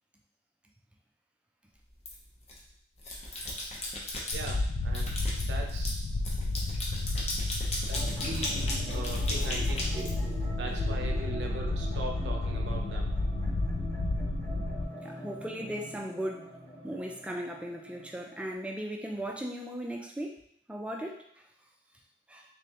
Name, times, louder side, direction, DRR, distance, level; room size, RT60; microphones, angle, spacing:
sound 1, 2.0-2.6 3.0-4.5 4.9-10.7, left 1 dB, 35° left, 0.8 m, -36 dB
sound 2, 4.3-14.8, left 2 dB, 65° left, 0.4 m, -31 dB
voice 1, 4.3-6.0 7.9-10.2 10.6-13.1 14.6-14.7, right 2 dB, 65° right, 2 dB, 0.6 m, -40 dB
sound 3, 7.9-18.5, equal, 20° left, 1.3 m, -43 dB
voice 2, 15.0-16.5 16.8-20.4 20.7-21.3 22.3-22.4, right 1 dB, 5° right, 0 dB, 0.4 m, -37 dB
3.4 x 3.3 x 2.9 m, 0.69 s
head